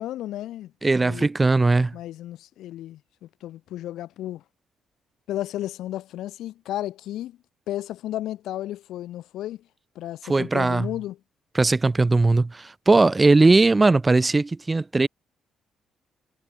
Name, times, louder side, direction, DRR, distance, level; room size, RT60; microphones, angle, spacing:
voice 1, 0.0-0.7 1.0-1.3 1.9-4.4 5.3-7.4 7.7-9.6 9.9-11.2, left 13 dB, 85° left, 2.7 m, -33 dB
voice 2, 0.8-1.9 10.2-10.9 11.5-15.1, right 3 dB, 20° right, 0.6 m, -19 dB
cardioid pair, 90°, 0 cm